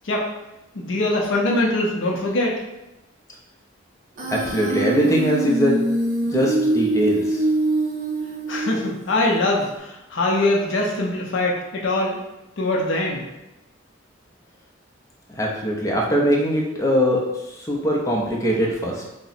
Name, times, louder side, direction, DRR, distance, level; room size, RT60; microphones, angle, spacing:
voice 1, 0.7-2.6 8.5-12.2 12.6-13.3, left 2 dB, 65° left, -2 dB, 0.5 m, -22 dB
Human voice, 4.2-9.1, right 2 dB, 40° right, 0.6 m, -23 dB
voice 2, 4.3-5.8 6.3-7.4 15.4-17.2 17.6-19.1, equal, 15° left, -2 dB, 0.5 m, -21 dB
2.8 x 2.0 x 4.0 m, 0.96 s
head